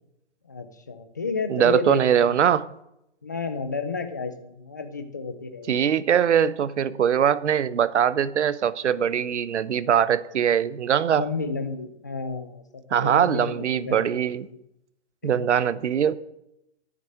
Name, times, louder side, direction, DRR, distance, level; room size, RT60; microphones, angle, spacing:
voice 1, 0.4-2.4 3.2-5.9 11.1-14.2 14.5-14.6, left 4 dB, 15° left, 0.4 m, -32 dB
voice 2, 1.5-2.7 5.7-11.3 12.9-14.5 15.2-16.2, right 8 dB, 80° right, 0.9 m, -22 dB
10.0 x 7.4 x 9.2 m
hypercardioid pair, 170°, 34 cm